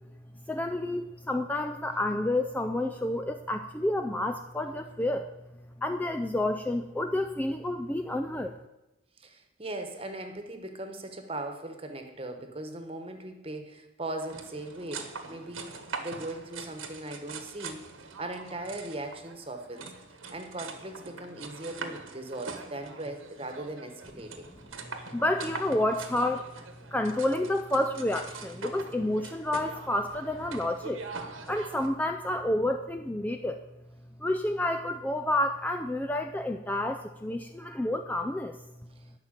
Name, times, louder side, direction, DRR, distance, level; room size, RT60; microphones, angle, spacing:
voice 1, 0.5-5.3 5.8-8.5 25.1-26.5 26.9-31.0 31.5-33.6 34.2-38.6, left 1 dB, 10° left, 6 dB, 0.4 m, -29 dB
voice 2, 9.2-17.9 18.2-19.9 20.3-24.5, right 1 dB, 30° right, 7 dB, 1.3 m, -39 dB
sound 1, 14.2-31.9, right 4 dB, 85° right, 1.4 m, -43 dB
11.5 x 5.8 x 8.9 m, 0.97 s
head